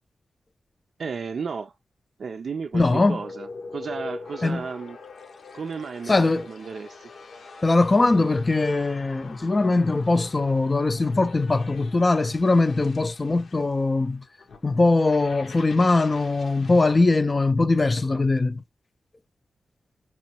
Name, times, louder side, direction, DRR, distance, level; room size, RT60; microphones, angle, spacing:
voice 1, 1.0-1.7 2.2-5.0 5.5-7.1, right 5 dB, 70° right, 0.4 m, -34 dB
voice 2, 2.7-3.2 4.4-4.6 6.1-6.5 7.6-14.2 14.6-18.6, left 3 dB, 30° left, 0.5 m, -21 dB
sound 1, 2.8-17.0, left 4 dB, 70° left, 0.8 m, -44 dB
6.0 x 3.0 x 2.9 m
wide cardioid pair, 110°, 0 cm